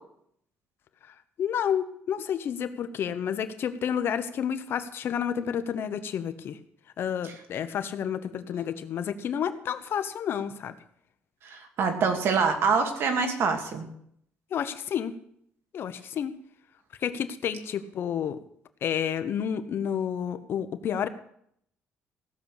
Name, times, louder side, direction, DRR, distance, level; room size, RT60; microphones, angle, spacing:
voice 1, 1.4-6.6 7.0-10.7 14.5-15.1 15.7-16.3 17.0-18.4 18.8-21.1, left 8 dB, 55° left, 10 dB, 1.1 m, -30 dB
voice 2, 11.4-13.9, right 5 dB, 60° right, 5 dB, 2.5 m, -25 dB
16.5 x 7.1 x 8.3 m, 0.69 s
cardioid pair, 130°, 5 cm